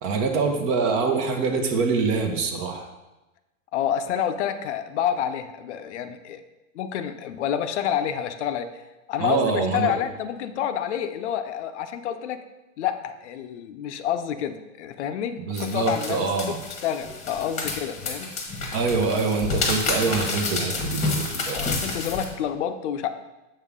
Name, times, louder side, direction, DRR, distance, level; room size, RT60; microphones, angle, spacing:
voice 1, 0.0-2.9 9.2-9.9 15.5-16.6 18.7-21.7, right 4 dB, 35° right, 5 dB, 0.9 m, -25 dB
voice 2, 3.7-6.4 6.7-8.7 9.1-12.4 12.8-16.3 16.8-18.3 21.5-23.1, left 9 dB, 60° left, 9 dB, 0.6 m, -28 dB
sound 1, 15.5-22.2, left 4 dB, 20° left, 1.0 m, -29 dB
7.2 x 5.5 x 3.6 m, 1.0 s
supercardioid pair, 145°, 39 cm